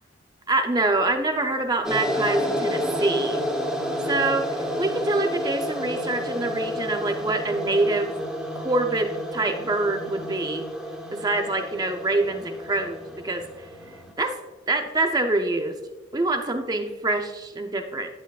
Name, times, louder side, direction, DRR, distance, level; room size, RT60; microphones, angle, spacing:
voice 1, 0.5-3.4 4.1-8.1 8.6-10.6 11.1-13.4 14.2-14.3 14.7-15.7 16.1-18.1, right 2 dB, 20° right, 5 dB, 0.5 m, -25 dB
sound 1, 1.8-14.1, equal, 5° right, 0.9 m, -30 dB
10.5 x 8.1 x 2.4 m, 1.2 s
head